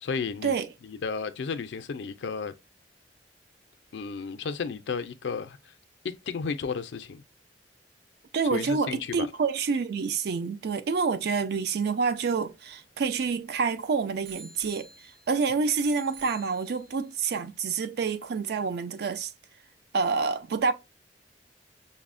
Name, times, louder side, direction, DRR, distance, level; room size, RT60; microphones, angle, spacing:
voice 1, 0.0-0.5 0.8-2.5 3.9-5.7 6.0-7.2 8.5-9.3, left 5 dB, 85° left, 0.4 m, -33 dB
voice 2, 8.3-14.9 15.3-19.3 19.9-20.7, right 5 dB, 65° right, 0.4 m, -27 dB
Bicycle bell, 11.9-13.6 14.2-15.4 15.8-17.1 17.8-17.9, right 5 dB, 85° right, 1.0 m, -48 dB
5.4 x 2.0 x 2.4 m
head